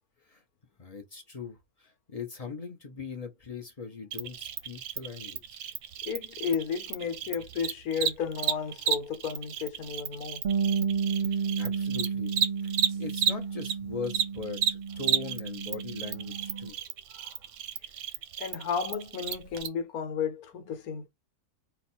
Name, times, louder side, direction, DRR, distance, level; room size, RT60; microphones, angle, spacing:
voice 1, 0.8-5.7 11.2-12.4 12.6-16.8, left 4 dB, 40° left, 0.6 m, -40 dB
Cricket, 4.1-13.7 14.0-19.7, right 9 dB, 65° right, 0.9 m, -32 dB
voice 2, 6.1-10.4 18.4-21.1, left 6 dB, 75° left, 1.3 m, -33 dB
Bass guitar, 10.4-16.7, right 6 dB, 85° right, 0.4 m, -32 dB
4.1 x 2.4 x 4.3 m
omnidirectional pair, 1.6 m